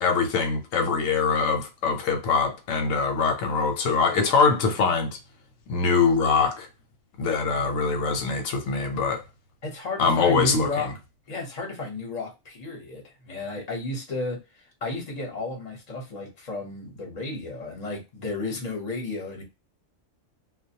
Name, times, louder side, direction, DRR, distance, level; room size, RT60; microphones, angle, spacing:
voice 1, 0.0-5.2 5.7-6.7 7.2-9.2 10.0-10.7, left 5 dB, 90° left, 1.0 m, -23 dB
voice 2, 9.6-10.9 11.3-19.4, left 2 dB, 35° left, 0.9 m, -33 dB
2.3 x 2.1 x 2.7 m
omnidirectional pair, 1.3 m